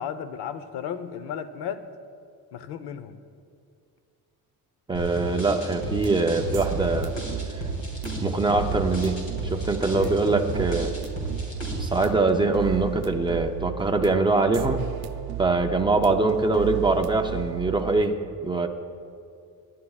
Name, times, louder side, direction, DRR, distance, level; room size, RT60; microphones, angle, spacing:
voice 1, 0.0-1.9 2.5-3.2 10.0-10.2, left 8 dB, 85° left, 12 dB, 0.8 m, -34 dB
sound 1, 4.9-12.0, right 1 dB, 40° left, 3.4 m, -33 dB
voice 2, 4.9-7.1 8.2-10.9 11.8-14.8 15.4-18.7, right 3 dB, 10° right, 4 dB, 0.5 m, -23 dB
sound 2, 5.8-18.0, right 12 dB, 70° right, 0.7 m, -34 dB
28.5 x 11.0 x 2.4 m, 2.4 s
cardioid pair, 170°, 39 cm